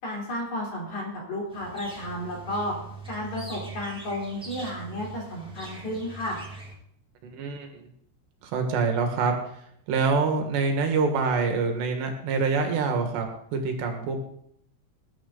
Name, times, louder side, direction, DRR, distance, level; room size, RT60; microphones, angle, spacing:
voice 1, 0.0-2.7 3.1-6.4, left 1 dB, 40° left, -2 dB, 4.9 m, -32 dB
sound 1, 1.5-6.7, right 3 dB, ahead, 1.3 m, -42 dB
voice 2, 7.2-7.8 8.4-9.4 9.9-13.3 13.5-14.2, right 4 dB, 75° right, 4 dB, 3.9 m, -25 dB
20.5 x 10.5 x 4.0 m, 0.70 s
omnidirectional pair, 5.1 m